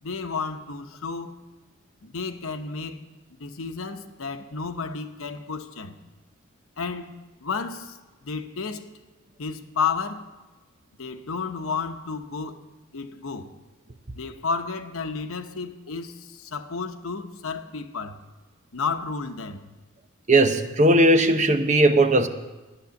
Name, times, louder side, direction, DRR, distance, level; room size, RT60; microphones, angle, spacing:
voice 1, 0.0-1.3 2.0-3.1 3.4-5.9 6.8-8.9 9.4-10.3 11.0-12.6 12.9-13.5 14.1-18.2 18.7-19.7, left 5 dB, 85° left, 0.9 m, -32 dB
voice 2, 20.3-22.3, right 1 dB, 35° right, 0.8 m, -18 dB
12.5 x 10.0 x 7.0 m
head